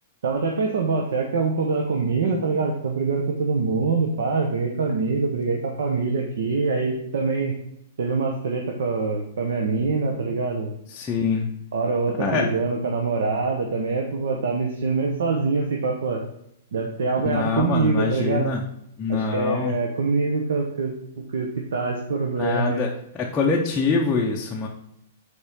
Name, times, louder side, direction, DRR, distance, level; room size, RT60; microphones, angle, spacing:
voice 1, 0.2-7.5 8.0-10.7 11.7-16.2 16.7-18.5 19.1-20.9 21.3-22.8, right 4 dB, 70° right, 1 dB, 1.1 m, -24 dB
voice 2, 10.9-11.5 12.2-12.5 17.2-18.6 19.0-19.8 22.4-22.9 23.2-24.7, left 4 dB, 10° left, -3 dB, 0.6 m, -24 dB
9.6 x 4.5 x 3.6 m, 0.77 s
hypercardioid pair, 175°, 0 cm